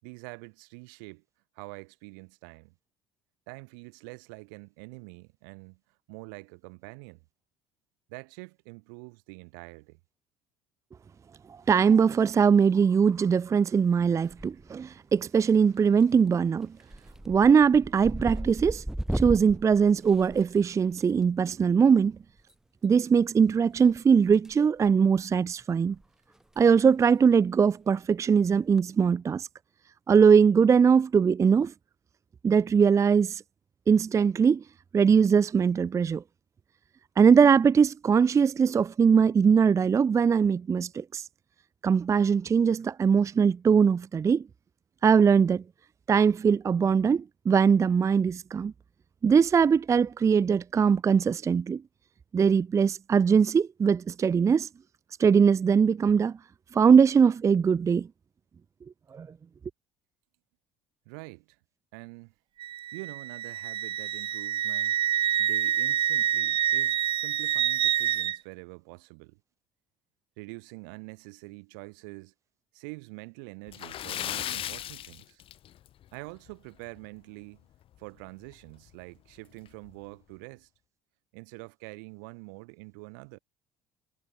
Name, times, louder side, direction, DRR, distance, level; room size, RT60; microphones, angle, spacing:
voice 1, 0.0-1.2 1.6-2.7 3.5-5.8 6.1-7.2 8.1-10.0 61.1-61.6 61.9-62.3 62.9-65.0 65.4-69.4 70.4-72.3 72.7-75.4 76.1-77.7 78.0-80.7 81.3-83.4, right 34 dB, 80° right, 6.9 m, -45 dB
voice 2, 11.5-16.7 17.3-18.8 19.1-22.2 22.8-26.0 26.6-29.5 30.1-31.7 32.4-33.4 33.9-34.6 34.9-36.2 37.2-41.3 41.8-44.4 45.0-45.6 46.1-48.7 49.2-51.8 52.3-54.7 55.2-56.4 56.7-58.1 59.1-59.3, right 6 dB, 30° right, 0.4 m, -21 dB
sound 1, 14.2-14.8 15.1-15.6 16.0-16.3 16.6-21.0 22.4-22.5 23.8-24.6 24.8-25.1 25.6-25.7 25.9-26.0 26.4-26.6 26.9-27.0 28.5-28.8, right 1 dB, 5° right, 2.0 m, -36 dB
Wind instrument woodwind instrument, 62.6-68.4, right 11 dB, 50° right, 1.1 m, -27 dB
Splash splatter, 73.7-76.0 76.4-76.5 77.0-77.1 78.5-78.6 78.9-79.0 79.7-79.9, left 12 dB, 55° left, 2.9 m, -36 dB
hypercardioid pair, 70°, 11 cm